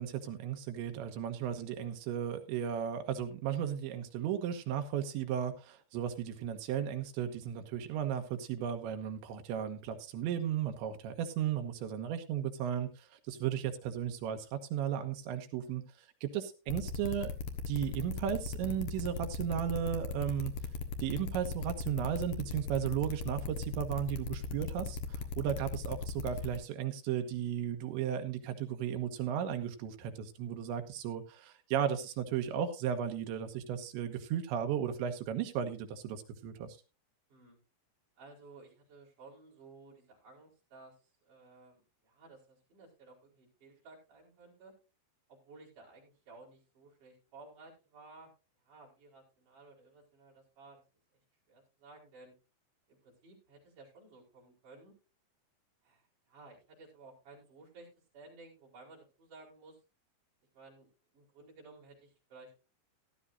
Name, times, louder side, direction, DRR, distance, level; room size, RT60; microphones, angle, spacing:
voice 1, 0.0-15.8 16.2-17.3 17.7-20.5 21.0-36.7, right 9 dB, 80° right, 6 dB, 3.4 m, -35 dB
sound 1, 16.7-26.6, left 4 dB, 65° left, 2.3 m, -38 dB
voice 2, 38.2-44.7 45.3-48.3 48.6-50.8 51.1-51.2 51.5-52.3 52.9-54.9 55.8-57.9 58.1-59.8 60.5-62.5, right 3 dB, 45° right, -4 dB, 5.9 m, -56 dB
15.5 x 12.5 x 2.6 m, 0.29 s
omnidirectional pair, 5.3 m